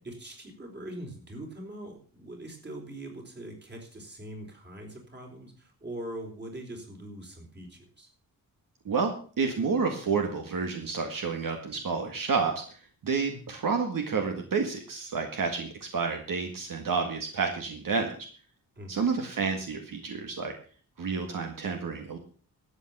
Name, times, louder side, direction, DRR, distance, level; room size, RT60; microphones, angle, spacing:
voice 1, 0.0-8.1 18.8-19.1, right 1 dB, 30° right, 2 dB, 4.2 m, -42 dB
voice 2, 8.9-18.1 18.9-20.5 21.0-22.2, right 5 dB, 65° right, 4 dB, 1.9 m, -30 dB
13.0 x 8.5 x 7.2 m, 0.42 s
wide cardioid pair, 155°, 36 cm